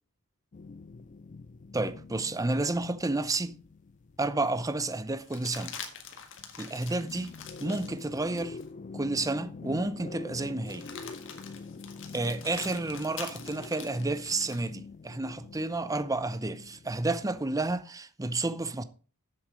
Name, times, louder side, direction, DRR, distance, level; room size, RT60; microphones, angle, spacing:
sound 1, 0.5-6.1 6.4-17.4, left 4 dB, 35° left, 0.4 m, -46 dB
voice 1, 1.7-3.6 4.2-5.8 6.6-7.3 7.6-8.6 8.9-10.9 12.1-18.8, right 2 dB, 15° right, 0.6 m, -31 dB
sound 2, 3.6-3.7 5.2-8.7 9.2-9.3 10.6-14.7 16.9-17.7, left 7 dB, 60° left, 1.6 m, -45 dB
7.8 x 7.2 x 5.1 m
head